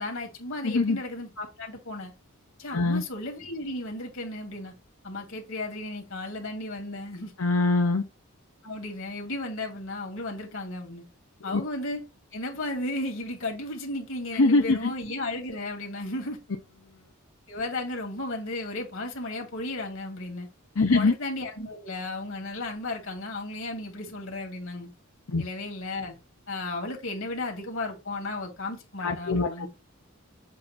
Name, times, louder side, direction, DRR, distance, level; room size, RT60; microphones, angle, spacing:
voice 1, 0.0-2.1 2.6-4.7 5.0-7.3 8.6-11.0 11.4-12.0 12.3-16.4 17.5-20.5 20.9-24.9 25.4-26.2 26.5-29.7, left 2 dB, 65° left, 2.2 m, -34 dB
voice 2, 0.6-1.0 2.7-3.0 7.4-8.0 11.5-11.6 14.3-14.9 20.8-21.1 25.3-25.4 29.0-29.7, left 3 dB, 85° left, 0.8 m, -23 dB
7.6 x 2.6 x 5.6 m
head